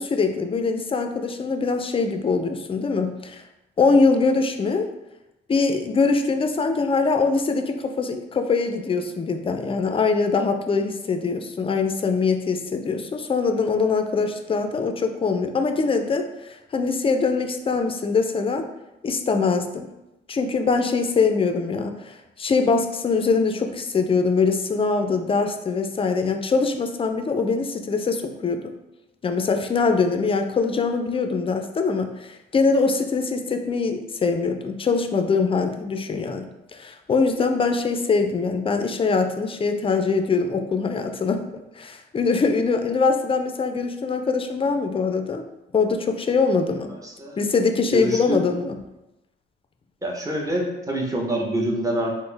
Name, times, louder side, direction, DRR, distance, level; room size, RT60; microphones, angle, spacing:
voice 1, 0.0-3.4 3.8-4.9 5.5-18.7 19.0-19.9 20.3-28.7 29.2-41.5 41.8-45.4 45.7-46.9 47.4-48.8, left 4 dB, 30° left, 6 dB, 0.3 m, -23 dB
voice 2, 47.0-47.4 47.9-48.5 50.0-52.1, right 1 dB, 15° right, -1 dB, 0.8 m, -26 dB
4.1 x 2.0 x 3.3 m, 0.95 s
cardioid pair, 90°, 20 cm